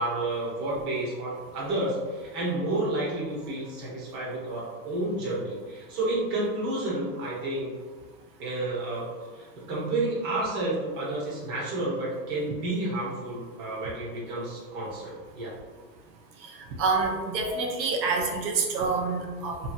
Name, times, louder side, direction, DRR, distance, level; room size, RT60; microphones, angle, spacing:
voice 1, 0.0-7.7 8.4-15.5, right 2 dB, 25° right, -6 dB, 0.9 m, -30 dB
voice 2, 16.8-19.6, right 4 dB, 90° right, 1 dB, 0.8 m, -27 dB
2.8 x 2.6 x 2.5 m, 1.4 s
supercardioid pair, 150°, 50 cm